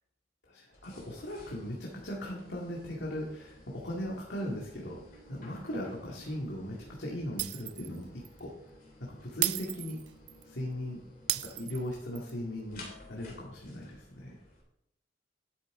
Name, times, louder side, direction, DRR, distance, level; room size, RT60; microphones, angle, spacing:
voice 1, 0.5-8.5 9.0-10.0 10.4-11.0 11.3-12.8 13.1-14.3, equal, 90° left, -3 dB, 2.1 m, -38 dB
sound 1, 0.7-14.6, left 1 dB, 55° left, 3.0 m, -54 dB
Shatter, 7.4-8.0 8.3-8.4 9.4-10.4 11.3-12.3, right 15 dB, 75° right, 0.4 m, -34 dB
11.5 x 8.5 x 3.8 m, 0.80 s
head